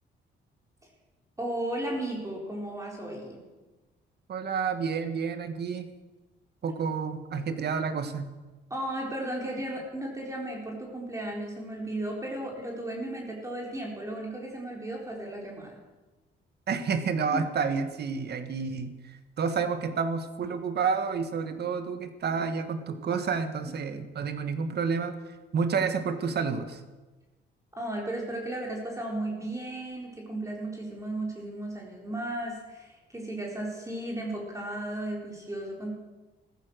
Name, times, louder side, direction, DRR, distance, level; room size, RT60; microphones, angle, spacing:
voice 1, 1.4-3.4 8.7-15.8 17.3-17.4 23.6-23.7 27.7-35.9, right 1 dB, 15° right, -1 dB, 4.1 m, -35 dB
voice 2, 4.3-5.9 6.6-8.3 16.7-25.2 25.5-26.8, right 5 dB, 55° right, 10 dB, 1.7 m, -30 dB
15.0 x 14.5 x 6.5 m, 1.2 s
cardioid pair, 90°, 20 cm